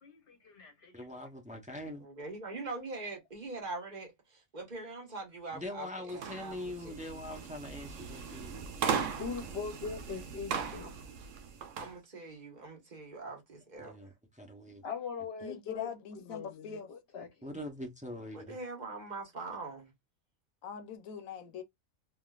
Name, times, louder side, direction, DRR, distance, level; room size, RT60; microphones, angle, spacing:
voice 1, 0.0-1.0 9.2-10.9 14.8-15.9 16.3-17.6, left 5 dB, 55° left, 1.0 m, -41 dB
voice 2, 0.9-2.1 5.5-8.7 13.8-14.1 14.4-14.8 17.4-18.6, left 1 dB, 10° right, 0.4 m, -43 dB
voice 3, 2.0-7.1 10.5-11.0 11.8-14.1 18.3-19.9, right 3 dB, 35° right, 1.3 m, -43 dB
sound 1, 6.1-11.9, right 6 dB, 70° right, 0.9 m, -38 dB
voice 4, 15.4-16.9 20.6-21.6, left 7 dB, 80° left, 1.1 m, -42 dB
3.5 x 2.5 x 2.3 m
omnidirectional pair, 1.4 m